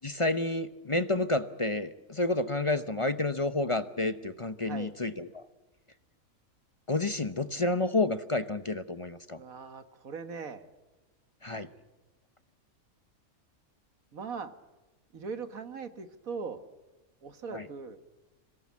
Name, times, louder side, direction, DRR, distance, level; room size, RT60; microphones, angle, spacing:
voice 1, 0.0-5.4 6.9-9.4 11.4-11.7 17.5-17.7, left 2 dB, 30° left, 11 dB, 0.6 m, -30 dB
voice 2, 4.6-4.9 9.4-10.6 14.1-14.5 15.1-16.6 17.2-18.0, right 5 dB, 75° right, 9 dB, 1.9 m, -40 dB
25.5 x 18.0 x 8.4 m, 1.1 s
omnidirectional pair, 1.5 m